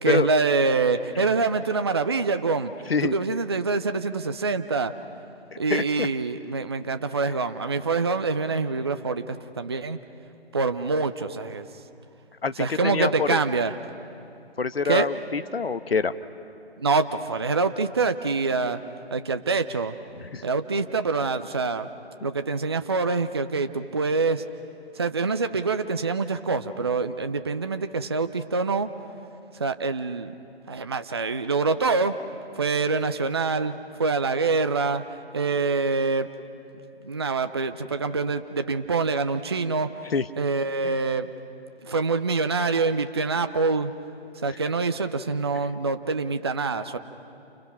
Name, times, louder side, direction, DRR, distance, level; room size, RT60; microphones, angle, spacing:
voice 1, 0.0-2.7 3.0-4.9 5.6-10.0 10.5-11.7 12.6-13.8 14.8-15.1 16.8-18.8 19.1-19.9 20.4-21.9 22.2-24.4 25.0-28.9 29.6-30.3 30.7-32.1 32.6-33.7 34.0-35.0 35.3-36.3 37.0-39.9 40.4-41.3 41.8-43.9 44.4-47.0, right 4 dB, 25° right, 9 dB, 0.5 m, -25 dB
voice 2, 5.7-6.1 12.4-13.4 14.6-16.1 20.3-20.4 40.1-40.2 40.8-40.9, left 5 dB, 65° left, 12 dB, 1.1 m, -25 dB
30.0 x 29.0 x 5.9 m, 2.7 s
figure-of-eight pair, 150°, 32 cm